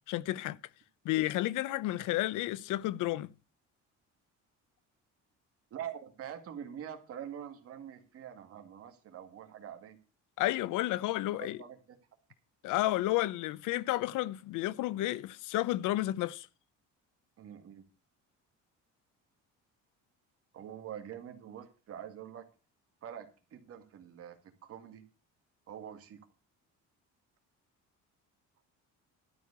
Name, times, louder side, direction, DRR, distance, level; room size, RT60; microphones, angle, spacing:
voice 1, 0.1-0.6 1.0-3.3 10.4-11.6 12.6-16.5, left 16 dB, 85° left, 0.6 m, -31 dB
voice 2, 5.7-10.0 10.9-11.0 11.4-12.0 17.4-17.9 20.5-22.5 23.0-25.0 25.7-26.2, right 9 dB, 50° right, 2.0 m, -45 dB
12.5 x 4.8 x 8.3 m
cardioid pair, 170°, 30 cm